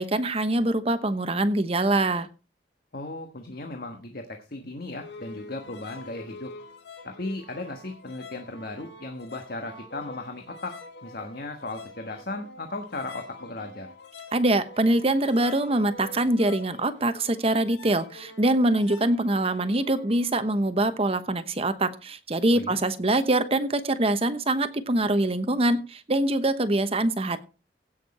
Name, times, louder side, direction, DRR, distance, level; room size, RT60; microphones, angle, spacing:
voice 1, 0.0-2.3 14.3-27.4, right 1 dB, 35° right, 11 dB, 1.0 m, -24 dB
voice 2, 2.9-6.5 7.0-10.8 11.0-13.9 22.5-22.8, left 2 dB, 55° left, 4 dB, 1.4 m, -36 dB
sound 1, 5.0-20.4, left 3 dB, 75° left, 2.0 m, -46 dB
16.0 x 6.5 x 4.3 m, 0.32 s
head